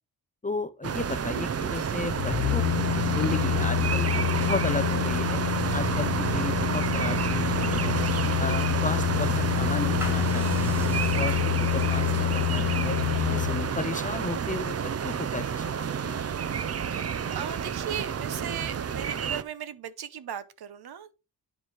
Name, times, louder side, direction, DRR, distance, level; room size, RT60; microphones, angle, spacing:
voice 1, 0.4-5.4 5.7-8.0 8.4-10.8 11.1-13.0 13.3-16.3, left 3 dB, 20° left, 0.4 m, -34 dB
sound 1, 0.8-19.4, right 7 dB, 40° right, 0.5 m, -29 dB
sound 2, 2.1-13.7 14.1-14.2, left 15 dB, 80° left, 0.5 m, -27 dB
sound 3, 9.3-15.9, right 1 dB, 5° right, 2.0 m, -47 dB
voice 2, 11.0-11.4 16.8-21.1, right 9 dB, 65° right, 0.9 m, -38 dB
9.6 x 4.7 x 4.8 m
wide cardioid pair, 165°, 41 cm